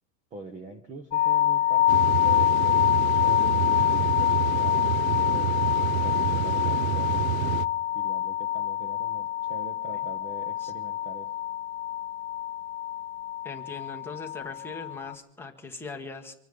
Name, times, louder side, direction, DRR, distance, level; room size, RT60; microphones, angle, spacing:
voice 1, 0.3-7.3 7.9-11.3, right 3 dB, 15° right, 6 dB, 0.7 m, -43 dB
sound 1, 1.1-15.1, left 12 dB, 45° left, 0.6 m, -26 dB
sound 2, 1.9-7.7, right 11 dB, 60° right, 0.6 m, -29 dB
voice 2, 13.4-16.3, left 4 dB, 5° left, 2 dB, 1.1 m, -40 dB
26.0 x 10.0 x 5.3 m, 0.76 s
supercardioid pair, 165°, 47 cm